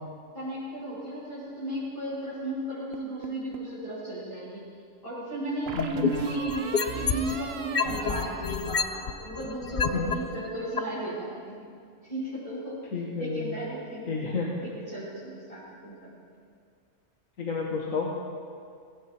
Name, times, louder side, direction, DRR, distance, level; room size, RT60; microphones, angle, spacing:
voice 1, 0.3-4.6 5.0-11.6 12.0-12.8 13.2-16.1, right 1 dB, 25° left, -10 dB, 5.3 m, -35 dB
sound 1, 2.9-3.8 5.7-9.3, right 6 dB, 55° right, 1.0 m, -38 dB
voice 2, 5.7-6.1 9.9-10.1 12.9-13.6 14.1-14.5 17.4-18.1, left 5 dB, 80° left, -3 dB, 2.0 m, -30 dB
sound 2, 5.8-7.4 7.7-10.1 10.8-10.9, left 6 dB, 40° left, 0.8 m, -27 dB
18.5 x 16.0 x 4.4 m, 2.2 s
omnidirectional pair, 1.4 m